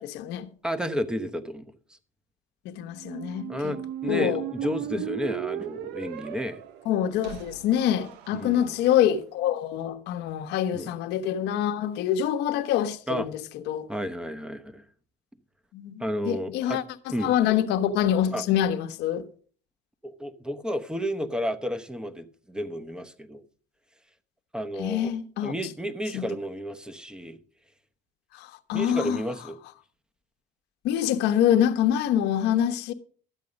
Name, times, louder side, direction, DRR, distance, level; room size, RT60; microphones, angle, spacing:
voice 1, 0.0-0.5 2.6-3.7 4.1-4.4 6.8-13.9 15.7-19.3 24.8-25.5 26.1-26.2 28.3-29.2 30.8-32.9, left 10 dB, 90° left, 1.1 m, -26 dB
voice 2, 0.6-1.6 3.5-6.6 8.4-8.7 10.7-10.9 13.1-13.3 13.9-14.8 16.0-16.8 17.1-17.3 18.3-18.4 20.0-23.4 24.5-25.1 25.4-27.4 28.7-29.6, equal, 5° right, 1.0 m, -32 dB
Squeak, 2.9-8.9, right 11 dB, 85° right, 0.8 m, -36 dB
12.5 x 8.4 x 5.2 m
cardioid pair, 110°, 17 cm